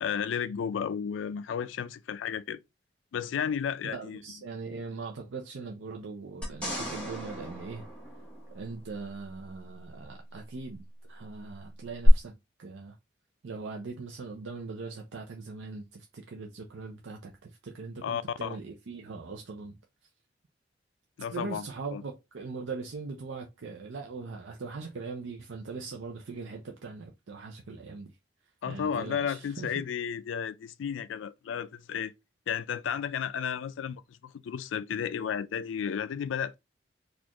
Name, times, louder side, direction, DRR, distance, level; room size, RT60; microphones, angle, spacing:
voice 1, 0.0-2.6 3.1-4.2 18.0-18.6 21.2-21.7 21.9-22.0 28.6-32.1 32.5-36.6, left 7 dB, 90° left, 0.3 m, -33 dB
voice 2, 3.8-7.9 8.5-12.9 13.4-19.8 21.3-28.2 28.7-29.7, right 4 dB, 85° right, 0.5 m, -41 dB
sound 1, 6.4-8.9 12.0-12.1, equal, 5° left, 1.3 m, -36 dB
4.1 x 2.4 x 2.9 m
head